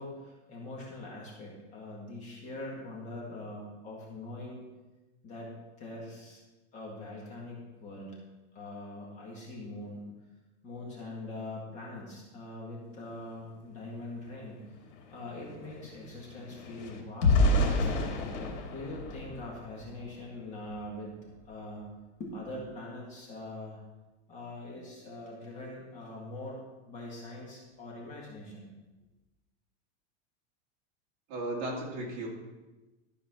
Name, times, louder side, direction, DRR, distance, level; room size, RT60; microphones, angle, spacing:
voice 1, 0.0-4.6 5.2-5.5 5.8-6.4 6.7-8.2 8.5-10.1 10.6-14.6 15.1-18.3 18.7-21.2 21.5-21.9 22.2-23.8 24.3-26.6 26.9-28.7, left 2 dB, 20° left, -3 dB, 1.9 m, -43 dB
sound 1, 14.3-14.4 14.6-20.1 20.6-20.8 21.2-21.4, left 2 dB, 80° left, 2.6 m, -30 dB
voice 2, 31.3-32.3, right 1 dB, 35° right, -2 dB, 2.4 m, -35 dB
13.0 x 4.9 x 6.1 m, 1.1 s
supercardioid pair, 175°, 35 cm